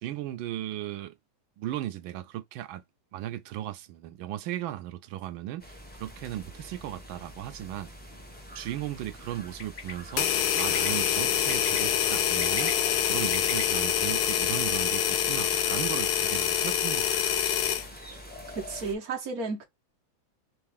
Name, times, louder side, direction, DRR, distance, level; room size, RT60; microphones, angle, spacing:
voice 1, 0.0-1.1 1.6-2.8 3.1-7.9 8.5-10.3 10.5-12.7 13.1-17.4, right 13 dB, 80° right, 1.4 m, -36 dB
sound 1, 5.6-18.9, equal, 15° left, 0.4 m, -45 dB
Bird, 9.6-9.9 10.6-10.9 11.5-11.8 12.3-13.6, left 4 dB, 50° left, 1.3 m, -36 dB
sound 2, 10.2-17.9, left 9 dB, 70° left, 0.9 m, -26 dB
voice 2, 18.5-19.6, right 4 dB, 55° right, 1.3 m, -33 dB
3.9 x 3.1 x 3.5 m
omnidirectional pair, 2.2 m